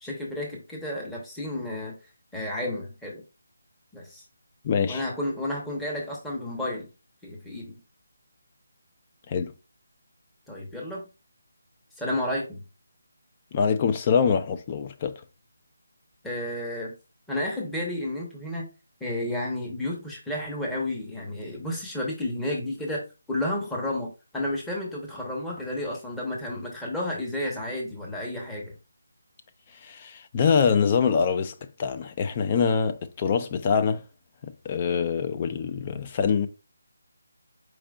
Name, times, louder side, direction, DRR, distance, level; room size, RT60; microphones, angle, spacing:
voice 1, 0.0-2.0 2.3-3.2 3.9-4.2 4.9-6.9 7.2-7.8 10.5-11.1 12.0-12.7 16.2-16.9 17.3-18.7 19.0-23.0 23.3-28.7, left 1 dB, 5° left, 0.9 m, -31 dB
voice 2, 4.6-5.0 9.3-9.5 13.5-15.2 29.8-34.0 34.6-36.5, left 6 dB, 25° left, 0.5 m, -24 dB
4.8 x 4.4 x 2.4 m
figure-of-eight pair, 165°, 0 cm